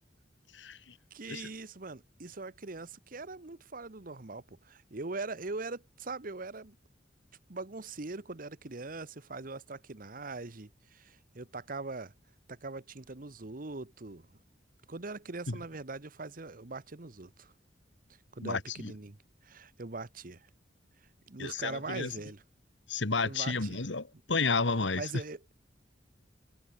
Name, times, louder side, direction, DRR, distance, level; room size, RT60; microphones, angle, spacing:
voice 1, 0.5-0.9 1.3-1.5 15.5-15.6 18.4-18.9 21.4-22.1 22.9-25.1, left 4 dB, 90° left, 2.0 m, -32 dB
voice 2, 1.1-6.7 7.5-12.1 12.5-14.3 14.9-17.5 18.3-19.2 19.4-20.5 21.3-22.4 23.2-23.8 24.9-25.5, right 3 dB, 50° right, 1.2 m, -41 dB
head